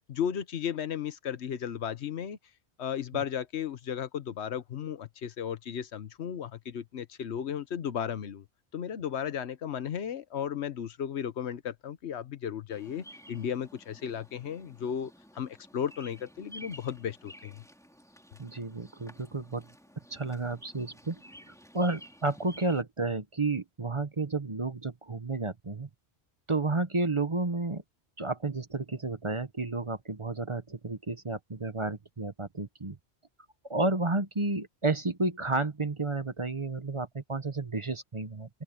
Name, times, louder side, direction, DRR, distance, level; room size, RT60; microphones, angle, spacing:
voice 1, 0.1-2.4 2.8-8.4 8.7-17.6, left 8 dB, 85° left, 1.2 m, -35 dB
Bird vocalization bird call bird song, 12.7-22.8, equal, 5° left, 4.0 m, -53 dB
voice 2, 18.4-19.7 20.1-21.2 21.5-25.9 26.5-27.8 28.2-33.0 33.7-38.5, right 3 dB, 30° right, 1.0 m, -31 dB
open air
omnidirectional pair, 1.1 m